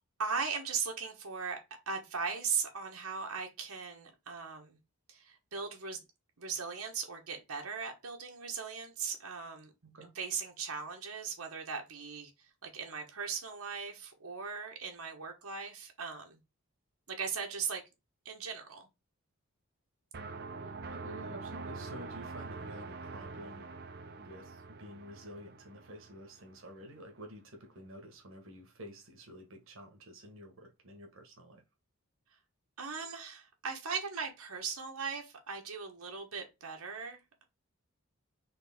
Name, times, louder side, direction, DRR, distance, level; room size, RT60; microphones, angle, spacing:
voice 1, 0.2-1.6 1.9-4.8 5.1-6.0 6.4-9.7 10.1-12.3 12.6-16.4 17.1-17.8 18.2-18.9 32.8-37.4, right 5 dB, 85° right, 1.3 m, -38 dB
sound 1, 20.1-26.9, right 3 dB, 45° right, 0.6 m, -45 dB
voice 2, 20.6-23.7 24.2-31.6, equal, 65° right, 1.2 m, -50 dB
4.3 x 3.3 x 3.5 m
head